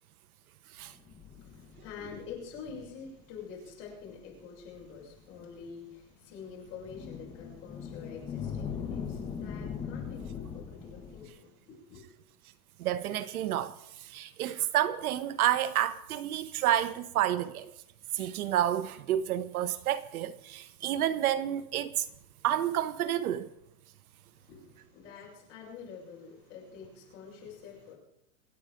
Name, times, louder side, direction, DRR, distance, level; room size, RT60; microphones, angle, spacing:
sound 1, 0.9-3.1 3.9-4.0 4.7-5.1 6.8-11.3, left 7 dB, 10° left, 1.5 m, -40 dB
voice 1, 1.3-12.0 24.3-28.0, left 6 dB, 25° left, 6.6 m, -47 dB
voice 2, 12.8-17.7 18.1-22.1 22.4-23.5, right 11 dB, 75° right, 1.1 m, -30 dB
26.0 x 8.8 x 5.1 m
supercardioid pair, 175°, 44 cm